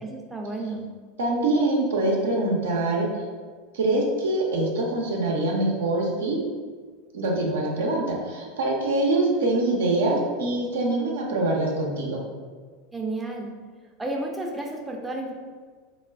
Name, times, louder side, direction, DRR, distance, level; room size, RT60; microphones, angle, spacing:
voice 1, 0.0-0.9 12.9-13.6 14.0-15.3, right 2 dB, 15° right, 0 dB, 0.5 m, -32 dB
voice 2, 1.2-3.2 3.7-6.4 7.1-12.2, right 2 dB, 75° right, -1 dB, 0.6 m, -24 dB
2.4 x 2.2 x 3.3 m, 1.5 s
hypercardioid pair, 85°, 0 cm